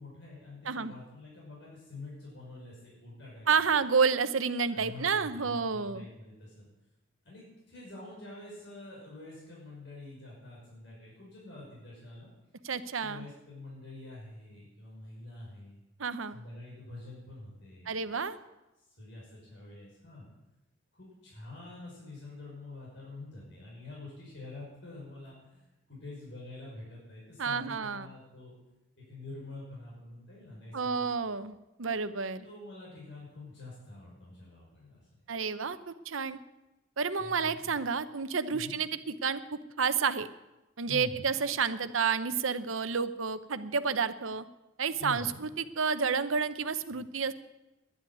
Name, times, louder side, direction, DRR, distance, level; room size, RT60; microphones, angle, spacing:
voice 1, 0.0-3.5 4.7-6.7 7.2-12.3 13.0-15.8 16.3-17.9 19.0-20.3 20.9-25.6 25.9-28.5 29.0-31.1 32.4-35.1 37.2-37.8 38.5-38.8 40.9-41.2 45.0-45.4, left 2 dB, 60° left, -5 dB, 6.0 m, -46 dB
voice 2, 3.5-6.0 12.6-13.3 16.0-16.4 17.9-18.4 27.4-28.1 30.7-32.5 35.3-36.4 37.0-40.3 40.8-44.5 44.8-47.3, right 5 dB, 85° right, 12 dB, 0.8 m, -30 dB
11.0 x 10.5 x 9.4 m, 0.99 s
head